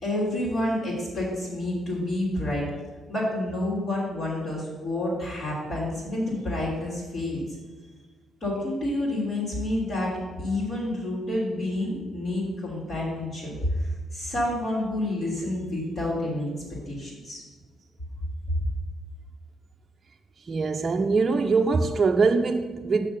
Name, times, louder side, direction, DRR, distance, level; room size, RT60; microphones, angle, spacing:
voice 1, 0.0-2.6 3.1-7.6 8.4-16.5 16.9-17.4 18.5-18.6, left 1 dB, 55° left, 3.1 m, -29 dB
voice 2, 20.5-23.1, right 4 dB, 35° right, 0.4 m, -23 dB
6.5 x 6.3 x 6.8 m
cardioid pair, 90°, 0 cm